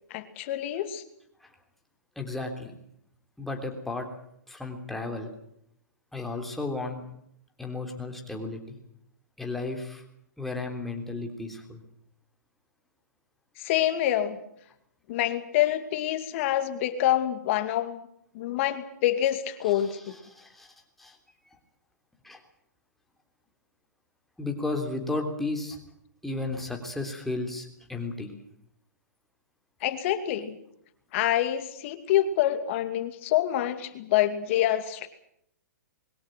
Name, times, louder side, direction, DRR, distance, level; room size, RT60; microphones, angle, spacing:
voice 1, 0.1-1.0 13.6-14.4 15.1-18.1 18.3-20.2 29.8-30.6 31.1-35.1, left 12 dB, 45° left, 10 dB, 2.4 m, -26 dB
voice 2, 2.1-2.7 3.4-4.1 4.5-5.3 6.1-7.0 7.6-8.8 9.4-10.0 10.4-11.8 19.6-20.7 21.0-21.2 22.2-22.4 24.4-25.8 26.2-28.3, left 2 dB, ahead, 2 dB, 3.4 m, -34 dB
22.0 x 16.5 x 9.1 m, 0.72 s
hypercardioid pair, 145°, 10 cm